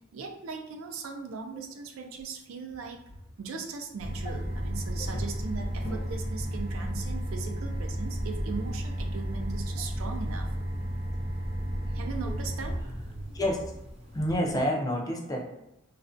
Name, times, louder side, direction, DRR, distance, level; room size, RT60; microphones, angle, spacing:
voice 1, 0.1-3.0 3.4-10.5 11.9-12.8, right 5 dB, 75° right, 4 dB, 0.4 m, -39 dB
sound 1, 2.7-11.3, left 1 dB, 75° left, 0.5 m, -48 dB
sound 2, 4.0-14.6, equal, 30° right, 0.6 m, -33 dB
voice 2, 14.1-15.5, equal, 20° left, -1 dB, 0.4 m, -29 dB
2.4 x 2.1 x 2.5 m, 0.86 s
head